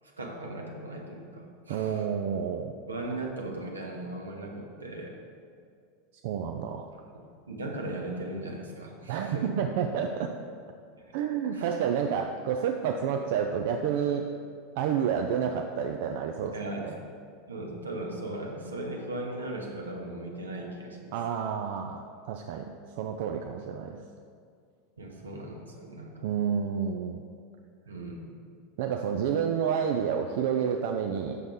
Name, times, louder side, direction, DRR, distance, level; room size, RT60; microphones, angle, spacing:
voice 1, 0.0-2.1 2.9-5.2 7.1-9.5 11.0-11.1 11.5-11.7 16.5-16.9 17.5-21.1 25.0-26.3 27.9-28.4, right 2 dB, 80° right, 0 dB, 1.0 m, -38 dB
voice 2, 1.7-2.7 6.2-6.9 9.1-10.3 11.1-14.3 14.8-16.6 16.8-17.0 21.1-24.0 26.2-27.2 28.8-31.4, right 7 dB, 55° right, 4 dB, 0.4 m, -29 dB
7.8 x 6.3 x 3.5 m, 2.2 s
figure-of-eight pair, 80°, 0 cm